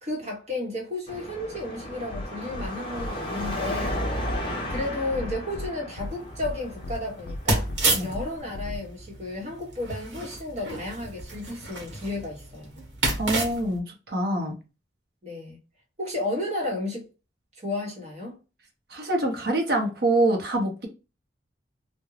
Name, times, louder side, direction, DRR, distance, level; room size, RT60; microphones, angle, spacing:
voice 1, 0.0-4.0 4.7-7.7 8.0-12.8 15.2-15.6 16.0-17.1 17.6-18.3, left 2 dB, 35° right, 1.0 m, -33 dB
Car passing by / Traffic noise roadway noise / Engine, 1.1-8.4, equal, 30° left, 0.7 m, -34 dB
sound 1, 2.1-2.2 2.5-2.7 3.0-3.1 3.4-3.5 3.8-4.0 4.3-4.4 4.7-4.8 5.1-5.7 6.0-6.1 6.4-6.5 6.8-7.0 7.3-7.4 7.7-7.8 8.1-8.2 8.5-8.8, left 1 dB, 65° left, 0.3 m, -35 dB
sound 2, 6.0-13.8, right 2 dB, 75° right, 1.1 m, -31 dB
voice 2, 13.2-14.5 18.9-20.9, right 1 dB, 55° right, 0.7 m, -25 dB
2.3 x 2.2 x 3.1 m
head